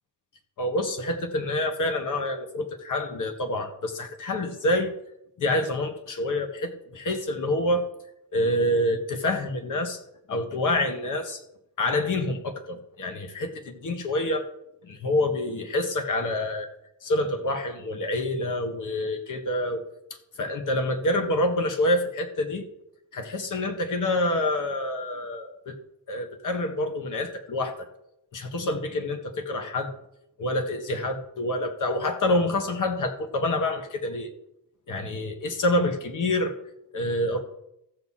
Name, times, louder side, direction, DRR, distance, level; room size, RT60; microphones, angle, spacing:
voice 1, 0.6-4.9 5.4-7.9 8.3-10.0 10.3-11.4 11.8-14.5 14.8-16.7 17.0-19.8 20.1-22.6 23.1-25.8 26.1-27.9 28.3-29.9 30.4-34.3 34.9-36.6 36.9-37.4, left 1 dB, 50° left, 6 dB, 1.7 m, -27 dB
14.5 x 7.5 x 4.2 m, 0.81 s
cardioid pair, 150°, 41 cm